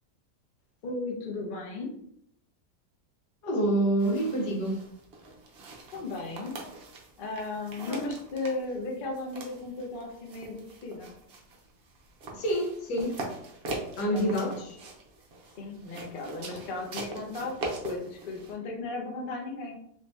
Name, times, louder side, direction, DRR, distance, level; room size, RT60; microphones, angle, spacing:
voice 1, 0.8-1.9 5.9-6.5 7.2-11.1 14.1-14.6 15.6-17.5 17.8-19.8, left 3 dB, 50° left, 0.6 m, -36 dB
voice 2, 3.4-4.8 7.9-8.1 12.3-13.2 14.0-14.8, right 1 dB, 80° left, 1.4 m, -27 dB
sound 1, 4.0-18.5, right 2 dB, 55° right, 0.7 m, -42 dB
3.1 x 2.7 x 3.4 m
omnidirectional pair, 1.7 m